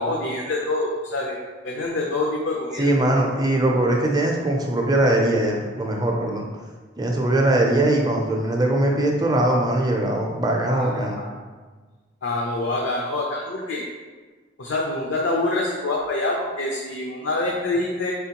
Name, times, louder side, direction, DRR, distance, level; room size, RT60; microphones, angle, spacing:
voice 1, 0.0-1.4 1.6-2.9 10.7-11.3 12.2-13.8 14.6-18.1, left 2 dB, 75° left, -1 dB, 0.5 m, -26 dB
voice 2, 2.8-6.5 7.0-11.2, right 1 dB, 20° right, 0 dB, 0.5 m, -21 dB
4.3 x 3.5 x 2.9 m, 1.4 s
head